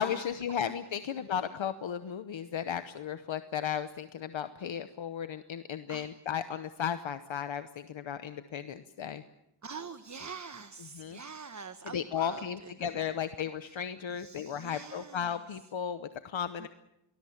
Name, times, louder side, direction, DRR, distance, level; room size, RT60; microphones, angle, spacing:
voice 1, 0.0-9.2 10.8-11.2 11.8-16.7, left 8 dB, 80° left, 10 dB, 1.0 m, -35 dB
voice 2, 9.6-12.7 13.6-13.8 14.2-15.3 16.6-16.7, right 5 dB, 40° right, 10 dB, 1.1 m, -45 dB
24.5 x 20.0 x 7.2 m, 0.89 s
wide cardioid pair, 65°, 46 cm